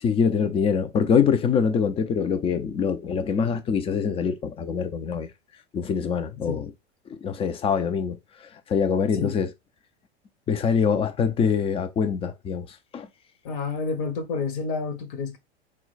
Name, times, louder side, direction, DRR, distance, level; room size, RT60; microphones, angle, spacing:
voice 1, 0.0-5.3 5.7-6.7 7.1-8.2 8.7-9.5 10.5-12.7 12.9-13.1, left 6 dB, 20° left, 0.4 m, -24 dB
voice 2, 13.4-15.4, left 4 dB, 50° left, 0.8 m, -29 dB
4.3 x 2.2 x 3.9 m
figure-of-eight pair, 90°, 33 cm